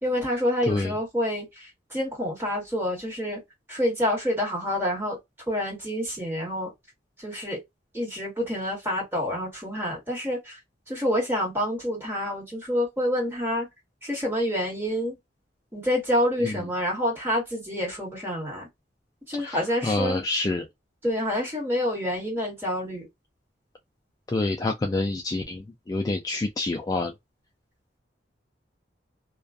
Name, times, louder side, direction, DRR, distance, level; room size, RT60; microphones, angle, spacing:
voice 1, 0.0-3.4 3.7-5.2 5.5-6.7 7.2-7.6 7.9-10.6 10.9-13.7 14.0-15.1 15.7-18.7 19.3-20.2 21.0-23.1, equal, 10° right, 1.5 m, -27 dB
voice 2, 19.4-20.7 24.3-27.1, left 2 dB, 20° left, 0.3 m, -27 dB
2.4 x 2.3 x 2.3 m
head